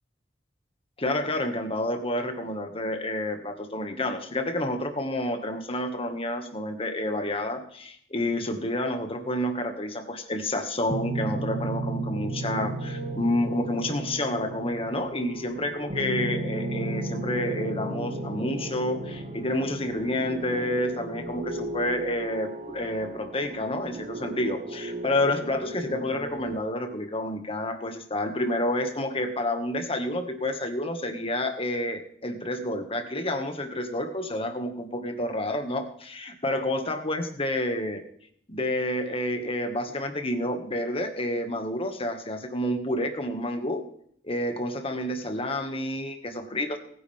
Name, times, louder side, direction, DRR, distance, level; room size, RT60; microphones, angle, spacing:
voice 1, 1.0-38.0 38.5-43.8 44.2-46.8, left 1 dB, 35° left, 5 dB, 1.9 m, -29 dB
sound 1, 10.9-26.6, right 2 dB, 40° right, 2.0 m, -34 dB
22.0 x 10.5 x 3.6 m, 0.65 s
head